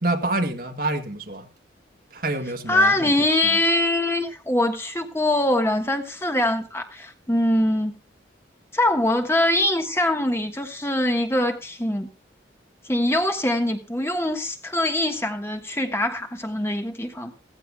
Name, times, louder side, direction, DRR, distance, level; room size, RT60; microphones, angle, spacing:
voice 1, 0.0-1.5 2.1-3.1 3.4-3.6, right 2 dB, 50° right, 1.7 m, -27 dB
voice 2, 2.7-7.9 8.7-12.1 12.9-17.3, left 1 dB, 15° left, 1.4 m, -23 dB
16.0 x 15.5 x 2.3 m
head